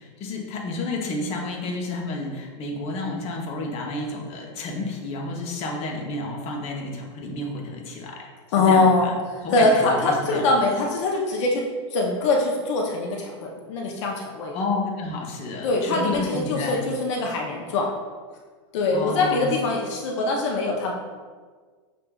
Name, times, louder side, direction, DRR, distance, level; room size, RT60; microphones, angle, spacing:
voice 1, 0.0-8.3 8.6-9.1 9.4-10.4 14.5-16.8 18.9-19.5, left 2 dB, 40° left, -1 dB, 0.8 m, -30 dB
voice 2, 8.5-11.6 11.9-14.5 15.6-17.9 18.7-20.9, left 2 dB, 70° left, 0 dB, 0.6 m, -23 dB
6.5 x 2.5 x 2.3 m, 1.5 s
supercardioid pair, 125°, 16 cm